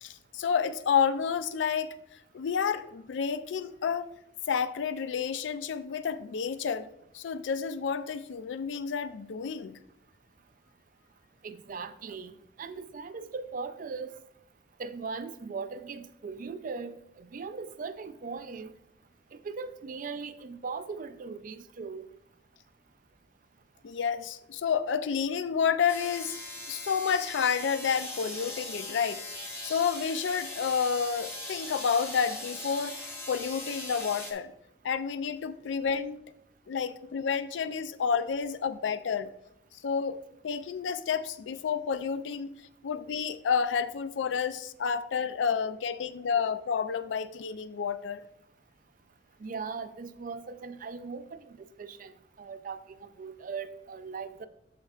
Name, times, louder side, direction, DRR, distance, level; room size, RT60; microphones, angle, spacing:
voice 1, 0.0-2.0 2.3-4.1 4.5-6.9 7.1-9.8 23.8-26.4 26.7-29.2 29.6-33.0 33.3-34.5 34.8-36.2 36.7-39.3 39.8-40.2 40.4-42.5 42.8-48.2, left 6 dB, 75° left, 0.4 m, -30 dB
voice 2, 11.4-12.3 12.6-14.1 14.8-18.7 19.3-22.0 49.4-54.5, right 4 dB, 45° right, 0.4 m, -39 dB
sound 1, 25.9-34.3, left 2 dB, 15° left, 1.0 m, -40 dB
13.0 x 4.4 x 2.4 m
head